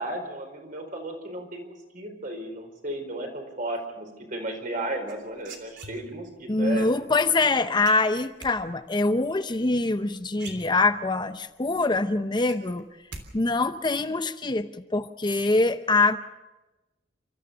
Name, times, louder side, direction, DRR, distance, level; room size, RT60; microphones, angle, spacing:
voice 1, 0.0-7.0, right 1 dB, 50° right, 4 dB, 4.7 m, -34 dB
sound 1, 5.1-6.4 7.8-8.5 9.9-10.0 10.3-11.2 11.6-11.7 12.0-13.3 13.5-14.0, right 3 dB, 80° right, 3.4 m, -43 dB
voice 2, 6.5-12.9 13.3-16.2, left 3 dB, 25° left, 10 dB, 0.7 m, -24 dB
29.5 x 14.0 x 7.0 m, 1.1 s
head